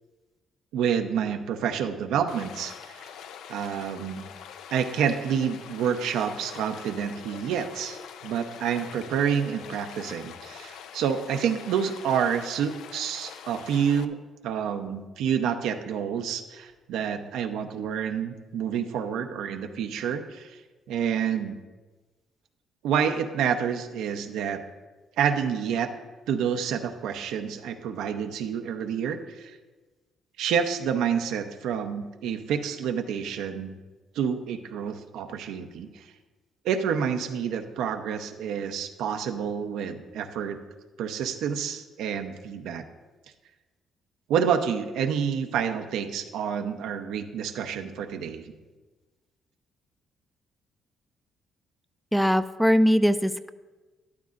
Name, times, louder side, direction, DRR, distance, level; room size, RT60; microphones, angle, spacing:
voice 1, 0.7-3.1 3.5-4.3 4.7-14.2 14.4-20.6 20.9-21.6 22.8-24.6 25.2-25.9 26.3-29.6 30.4-33.7 34.1-36.1 36.6-40.6 41.0-42.8 44.3-48.5, right 7 dB, 90° right, 6 dB, 0.7 m, -28 dB
Stream, 2.3-14.0, left 8 dB, 85° left, 0.5 m, -44 dB
voice 2, 52.1-53.5, equal, ahead, 10 dB, 0.4 m, -21 dB
13.5 x 12.0 x 2.5 m, 1.2 s
cardioid pair, 90°, 0 cm